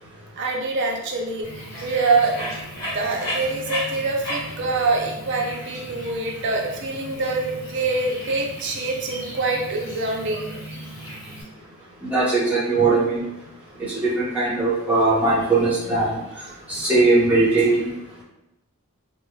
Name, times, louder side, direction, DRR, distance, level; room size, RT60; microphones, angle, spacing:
voice 1, 0.4-10.5, right 3 dB, 50° right, 0 dB, 0.4 m, -25 dB
Bird, 1.4-11.4, equal, 60° left, 1.1 m, -35 dB
voice 2, 12.0-13.2 14.0-16.2 16.7-17.9, right 3 dB, 5° right, -8 dB, 0.7 m, -19 dB
2.2 x 2.1 x 3.1 m, 0.91 s
head